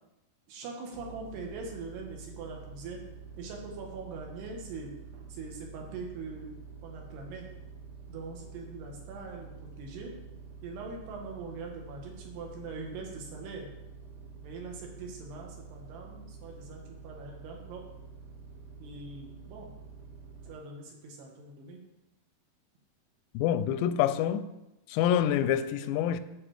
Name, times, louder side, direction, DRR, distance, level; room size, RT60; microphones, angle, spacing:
voice 1, 0.5-3.0 3.4-4.9 5.3-6.6 6.8-7.5 8.1-10.1 10.6-13.7 14.4-17.8 18.8-19.7 20.4-21.8, right 3 dB, 75° right, 3.4 m, -42 dB
sound 1, 0.9-20.6, right 5 dB, 90° right, 3.2 m, -48 dB
voice 2, 23.3-24.5 24.9-26.2, left 10 dB, 90° left, 2.7 m, -26 dB
8.9 x 6.3 x 4.9 m
omnidirectional pair, 4.9 m